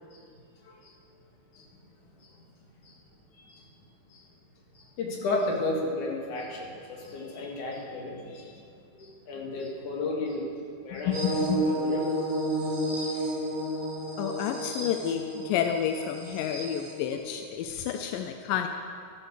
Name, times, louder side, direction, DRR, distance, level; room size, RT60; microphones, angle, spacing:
voice 1, 0.6-1.0 1.5-1.8 2.2-2.3 2.8-3.0 3.4-3.7 4.1-4.3 4.7-8.6 8.9-10.5 10.8-12.4 12.9-13.1 13.6-13.7 17.7-17.9, left 2 dB, 55° left, -2 dB, 3.2 m, -34 dB
voice 2, 11.1-11.7 14.2-18.7, left 9 dB, 80° left, 6 dB, 2.0 m, -30 dB
sound 1, 11.1-17.1, right 1 dB, 55° right, 4.9 m, -31 dB
13.0 x 10.5 x 6.4 m, 2.3 s
omnidirectional pair, 4.6 m